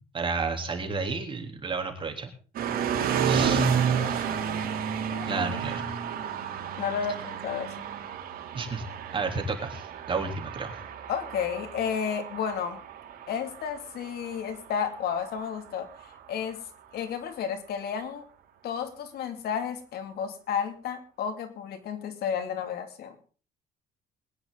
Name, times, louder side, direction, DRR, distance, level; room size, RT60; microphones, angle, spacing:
voice 1, 0.0-2.3 3.2-3.7 5.2-5.9 8.5-8.9 9.1-10.8, right 4 dB, 30° right, 3 dB, 3.5 m, -31 dB
sound 1, 2.5-16.6, right 7 dB, 60° right, 3.1 m, -31 dB
voice 2, 4.0-4.6 5.1-5.4 6.8-7.9 11.1-12.8 13.3-16.6 16.9-18.2 18.6-23.2, left 7 dB, 70° left, 7 dB, 2.6 m, -32 dB
21.5 x 10.5 x 4.0 m, 0.38 s
cardioid pair, 110°, 17 cm